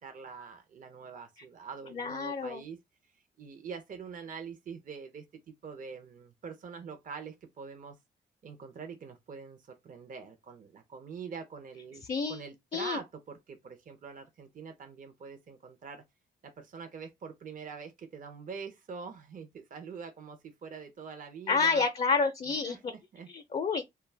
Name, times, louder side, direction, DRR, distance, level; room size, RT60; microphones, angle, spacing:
voice 1, 0.0-2.8 3.4-8.0 8.4-12.0 12.3-16.0 16.4-21.9 22.6-23.3, right 5 dB, 45° right, 0.6 m, -44 dB
voice 2, 1.9-2.6 12.1-12.4 12.7-13.0 21.5-22.9 23.3-23.8, left 4 dB, 35° left, 0.5 m, -29 dB
2.2 x 2.1 x 3.3 m
supercardioid pair, 60°, 18 cm